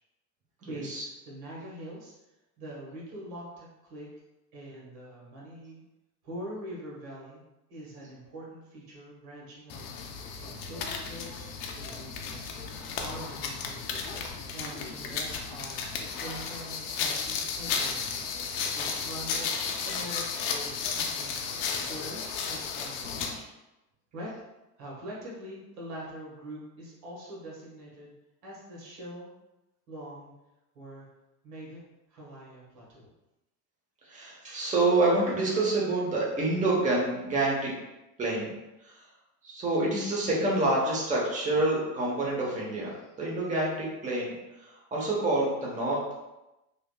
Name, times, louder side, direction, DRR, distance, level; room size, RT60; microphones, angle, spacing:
voice 1, 0.6-2.1 2.6-4.1 4.5-5.8 6.2-7.4 7.7-10.0 10.4-12.5 13.0-14.3 14.5-15.8 16.2-21.6 21.9-22.2 22.5-23.5 24.1-24.3 24.8-28.1 28.4-29.3 29.9-30.3 30.7-31.1 31.4-31.8 32.1-33.1, right 1 dB, 70° right, -5 dB, 1.5 m, -44 dB
sound 1, 9.7-23.4, left 5 dB, 60° left, 0.6 m, -34 dB
voice 2, 34.0-37.7 38.2-38.5 38.8-39.0 39.4-42.9 43.2-44.3 44.6-46.1, right 2 dB, 15° right, -5 dB, 0.9 m, -27 dB
3.3 x 2.6 x 2.2 m, 0.97 s
hypercardioid pair, 90°, 47 cm